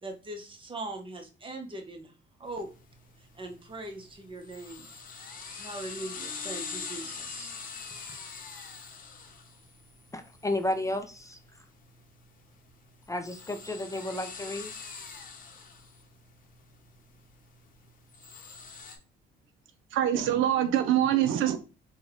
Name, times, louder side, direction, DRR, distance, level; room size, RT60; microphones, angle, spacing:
voice 1, 0.0-2.1 2.4-2.7 3.2-4.9 5.2-7.5, right 2 dB, 25° right, 3 dB, 0.9 m, -41 dB
sound 1, 2.5-19.0, left 5 dB, 45° left, 0.8 m, -44 dB
voice 2, 10.1-11.4 13.1-14.7, left 1 dB, 15° left, 7 dB, 0.5 m, -32 dB
voice 3, 19.9-21.6, right 11 dB, 85° right, 10 dB, 0.5 m, -24 dB
4.1 x 2.3 x 3.6 m, 0.33 s
cardioid pair, 90°, 20 cm